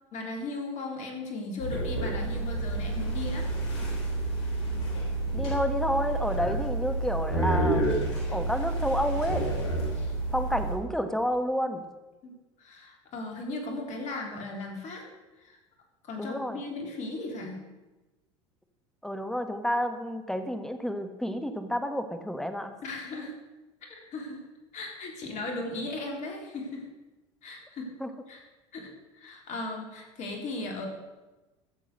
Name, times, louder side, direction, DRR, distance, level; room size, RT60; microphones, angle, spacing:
voice 1, 0.1-3.5 12.2-15.0 15.4-15.6 16.0-17.6 22.8-23.3 23.9-24.4 24.7-26.9 27.4-27.9 28.3-28.4 28.7-30.9, left 2 dB, 50° left, 2 dB, 3.3 m, -37 dB
sound 1, 1.6-10.8, right 2 dB, 70° left, 3.3 m, -29 dB
voice 2, 5.3-9.5 10.3-11.8 16.2-16.6 19.0-22.7 28.0-28.1, equal, 5° left, 8 dB, 1.4 m, -30 dB
14.0 x 7.3 x 6.5 m, 1.1 s
hypercardioid pair, 80°, 16 cm